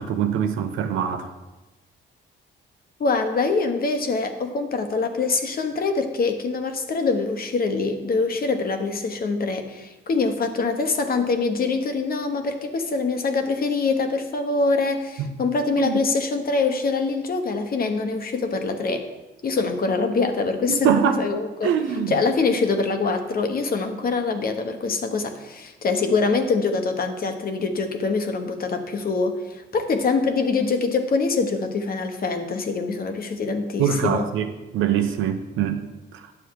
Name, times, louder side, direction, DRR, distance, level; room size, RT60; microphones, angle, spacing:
voice 1, 0.0-1.3 15.2-15.3 15.8-16.0 20.7-21.2 21.6-22.2 33.8-35.8 36.1-36.3, right 8 dB, 90° right, 7 dB, 0.9 m, -23 dB
voice 2, 3.0-19.0 19.4-21.7 22.1-34.3, left 4 dB, 50° left, 6 dB, 1.2 m, -24 dB
9.8 x 7.0 x 4.8 m, 1.1 s
cardioid pair, 90°, 20 cm